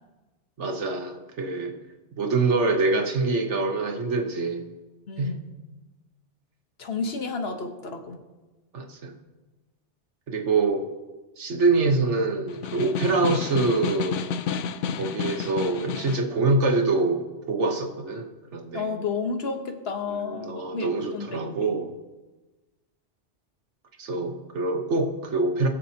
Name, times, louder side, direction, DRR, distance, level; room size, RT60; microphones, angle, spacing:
voice 1, 0.6-1.7 2.1-4.7 5.2-5.4 8.7-9.1 10.3-10.8 11.4-14.2 15.0-18.9 20.1-21.9 24.0-25.7, right 3 dB, 75° right, 4 dB, 1.4 m, -25 dB
voice 2, 5.1-5.5 6.8-8.2 18.7-21.8, left 4 dB, 60° left, 4 dB, 1.3 m, -32 dB
Snare drum, 12.5-16.3, left 7 dB, 85° left, 0.9 m, -31 dB
19.5 x 7.2 x 2.8 m, 1.2 s
omnidirectional pair, 1.2 m